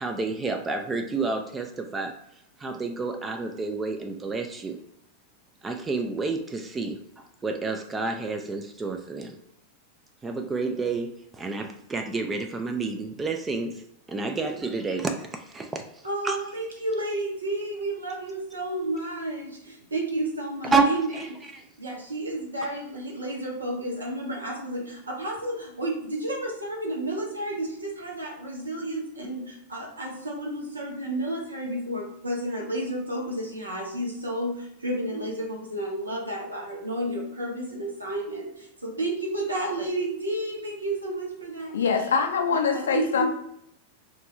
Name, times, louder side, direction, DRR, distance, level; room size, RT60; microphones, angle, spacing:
voice 1, 0.0-2.1 2.6-4.8 5.6-9.4 10.2-13.8 14.1-16.4 20.7-20.9 21.1-21.7, right 4 dB, 15° right, 4 dB, 0.3 m, -29 dB
voice 2, 16.0-21.5 21.8-41.8 42.5-43.3, right 1 dB, 80° right, -1 dB, 0.8 m, -31 dB
voice 3, 41.7-43.3, left 6 dB, 65° left, 3 dB, 0.4 m, -24 dB
2.6 x 2.5 x 3.1 m, 0.76 s
figure-of-eight pair, 90°, 0 cm